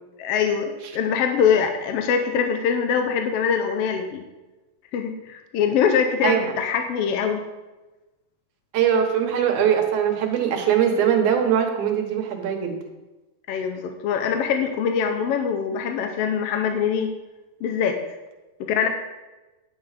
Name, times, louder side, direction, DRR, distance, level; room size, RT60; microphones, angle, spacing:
voice 1, 0.2-4.2 4.9-7.5 13.5-17.1 17.6-18.0 18.6-18.9, left 7 dB, 70° left, 5 dB, 1.6 m, -23 dB
voice 2, 8.7-12.8, right 8 dB, 85° right, 3 dB, 2.7 m, -21 dB
10.0 x 8.4 x 4.9 m, 1.1 s
omnidirectional pair, 3.4 m